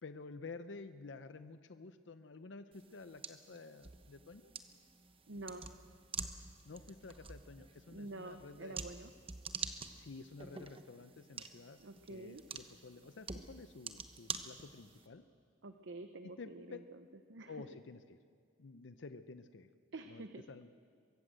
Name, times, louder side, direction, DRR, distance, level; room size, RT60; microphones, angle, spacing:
voice 1, 0.0-4.5 6.6-8.8 9.9-11.8 12.1-15.2 16.2-16.8 17.5-18.2 18.6-19.7 20.1-20.7, left 3 dB, 85° left, 10 dB, 0.7 m, -51 dB
sound 1, 2.7-15.1, right 5 dB, 30° right, 1.0 m, -47 dB
voice 2, 5.3-5.7 7.9-9.1 11.8-12.4 15.6-17.6 19.9-20.4, right 2 dB, 85° right, 8 dB, 0.8 m, -48 dB
23.0 x 14.5 x 7.9 m, 2.3 s
head